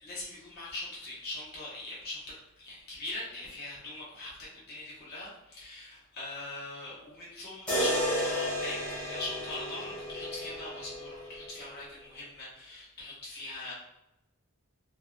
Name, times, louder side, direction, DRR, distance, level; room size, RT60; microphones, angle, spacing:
voice 1, 0.0-13.7, left 2 dB, 45° left, -7 dB, 0.8 m, -41 dB
sound 1, 7.7-11.7, equal, 5° left, 0.7 m, -33 dB
2.7 x 2.0 x 2.3 m, 0.90 s
head